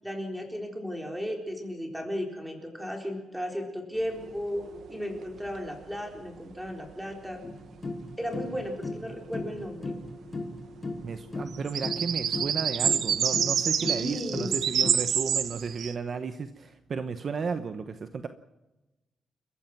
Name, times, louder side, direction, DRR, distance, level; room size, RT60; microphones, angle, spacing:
voice 1, 0.0-7.4 8.2-10.0 13.9-14.6, equal, ahead, 2 dB, 4.1 m, -35 dB
sound 1, 4.2-5.3 5.6-5.7 11.4-15.9, right 8 dB, 60° right, 1.1 m, -28 dB
sound 2, 7.4-14.9, left 2 dB, 20° left, 2.3 m, -37 dB
voice 2, 11.0-18.3, right 5 dB, 40° right, 9 dB, 1.0 m, -34 dB
29.5 x 14.5 x 6.0 m, 1.0 s
wide cardioid pair, 170°, 0 cm